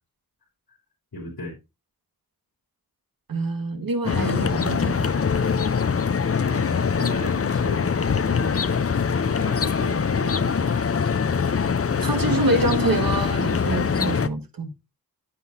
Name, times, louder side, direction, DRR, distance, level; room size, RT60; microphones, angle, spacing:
voice 1, 1.1-1.5 6.4-8.8 9.0-10.7, left 2 dB, 85° left, 3.3 m, -34 dB
voice 2, 3.3-5.2 12.0-14.7, right 2 dB, 70° right, 1.8 m, -26 dB
sound 1, 4.1-14.3, left 6 dB, 40° left, 0.7 m, -23 dB
9.6 x 8.7 x 2.7 m
wide cardioid pair, 60°, 36 cm